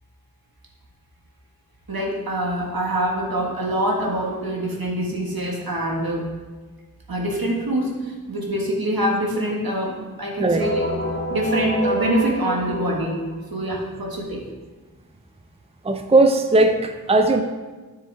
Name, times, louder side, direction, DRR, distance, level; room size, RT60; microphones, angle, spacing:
voice 1, 1.9-6.3 7.1-10.8 11.3-13.2 13.5-14.4, right 1 dB, 75° right, -1 dB, 1.7 m, -24 dB
sound 1, 10.6-13.5, equal, 35° left, 1.4 m, -28 dB
voice 2, 15.8-17.4, right 2 dB, 15° right, 7 dB, 0.5 m, -18 dB
9.7 x 6.6 x 3.5 m, 1.3 s
wide cardioid pair, 45°, 37 cm